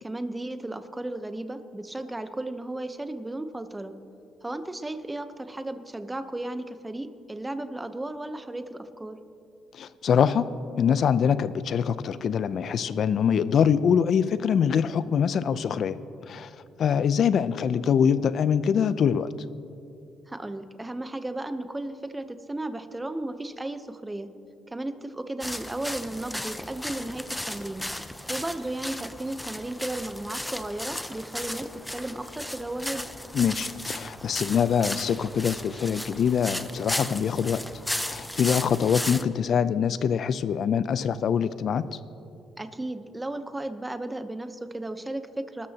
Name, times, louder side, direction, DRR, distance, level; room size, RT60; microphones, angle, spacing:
voice 1, 0.0-3.9 4.4-9.2 20.3-24.3 24.7-27.9 28.3-33.0 42.6-45.7, right 1 dB, 10° right, 9 dB, 0.9 m, -34 dB
voice 2, 9.7-16.0 16.3-16.5 16.8-19.3 33.3-37.6 38.0-41.9, left 7 dB, 55° left, 15 dB, 0.5 m, -24 dB
sound 1, 25.4-39.2, left 1 dB, 5° left, 0.5 m, -35 dB
25.0 x 13.0 x 2.9 m, 2.7 s
cardioid pair, 110°, 0 cm